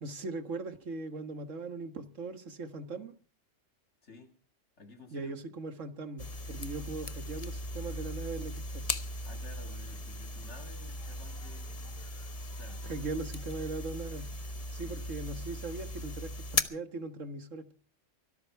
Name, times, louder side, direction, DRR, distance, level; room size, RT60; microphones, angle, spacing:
voice 1, 0.0-3.1 5.1-8.9 12.8-14.3 14.7-17.7, right 3 dB, 80° right, 1.9 m, -39 dB
voice 2, 4.0-4.3 4.8-5.3 9.3-12.0 12.6-12.9 14.8-15.0, left 2 dB, 65° left, 2.9 m, -52 dB
sound 1, 6.2-16.6, left 2 dB, 35° left, 0.9 m, -38 dB
sound 2, 6.2-16.2, right 2 dB, 50° right, 2.6 m, -61 dB
23.5 x 13.0 x 4.7 m
omnidirectional pair, 1.3 m